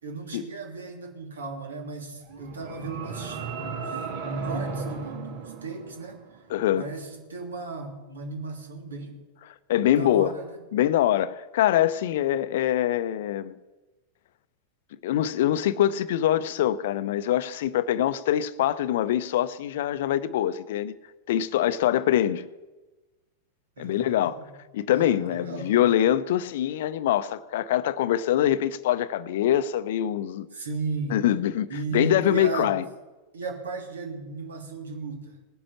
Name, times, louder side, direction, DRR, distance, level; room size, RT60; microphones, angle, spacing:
voice 1, 0.0-4.0 4.4-6.4 6.8-9.2 9.9-10.6 23.8-24.5 24.9-25.9 30.5-31.2 31.7-32.7 33.3-35.4, right 4 dB, 70° right, 3.1 m, -36 dB
sound 1, 2.2-6.4, right 4 dB, 55° right, 2.7 m, -34 dB
voice 2, 6.5-6.8 9.7-10.3 10.7-13.5 15.0-20.9 21.3-22.4 23.8-24.3 24.7-30.5 31.1-32.8, left 11 dB, 55° left, 0.7 m, -24 dB
19.0 x 10.0 x 7.0 m
figure-of-eight pair, 90°, 0 cm